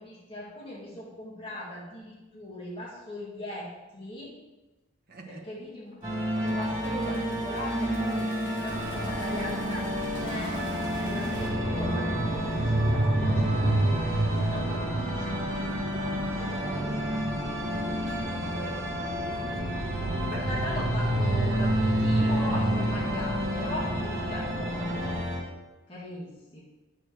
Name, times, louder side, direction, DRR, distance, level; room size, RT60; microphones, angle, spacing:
voice 1, 0.0-4.3 5.3-6.0 6.3-10.6 10.9-15.3 16.3-17.0 18.7-18.8 20.3-25.1 25.9-26.6, left 1 dB, 25° left, -7 dB, 2.1 m, -40 dB
voice 2, 5.1-5.4 16.5-16.8 18.0-19.6 19.9-20.5, right 2 dB, 50° right, 1 dB, 1.2 m, -43 dB
sound 1, 5.9-11.5, left 1 dB, 40° left, 2.8 m, -47 dB
sound 2, 6.0-25.4, equal, 35° right, 2.0 m, -31 dB
sound 3, 8.7-25.2, right 1 dB, 85° right, 0.9 m, -30 dB
9.8 x 7.7 x 3.4 m, 1.1 s
head